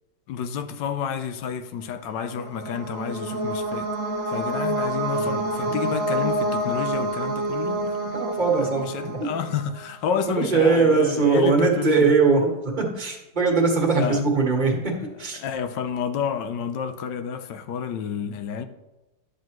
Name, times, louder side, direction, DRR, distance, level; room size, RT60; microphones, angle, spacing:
voice 1, 0.3-3.9 4.3-8.0 8.6-12.2 14.0-14.2 15.4-18.7, left 7 dB, 80° left, 1.3 m, -30 dB
sound 1, 2.1-9.9, right 1 dB, 55° right, 1.9 m, -28 dB
voice 2, 8.1-9.3 10.2-15.4, right 4 dB, 30° right, 1.5 m, -21 dB
11.0 x 7.6 x 3.0 m
omnidirectional pair, 1.9 m